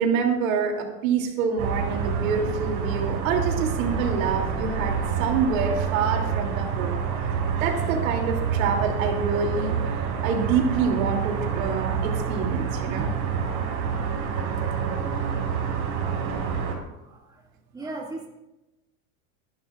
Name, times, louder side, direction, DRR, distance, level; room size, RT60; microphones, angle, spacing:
voice 1, 0.0-6.9 7.6-9.8 10.2-13.1, right 6 dB, 85° right, 2 dB, 3.1 m, -26 dB
sound 1, 1.6-16.8, right 6 dB, 45° right, 4.4 m, -27 dB
voice 2, 16.0-16.4 16.7-17.4 17.7-18.3, right 2 dB, 10° right, -2 dB, 2.3 m, -39 dB
23.5 x 11.5 x 2.5 m, 0.97 s
supercardioid pair, 155°, 39 cm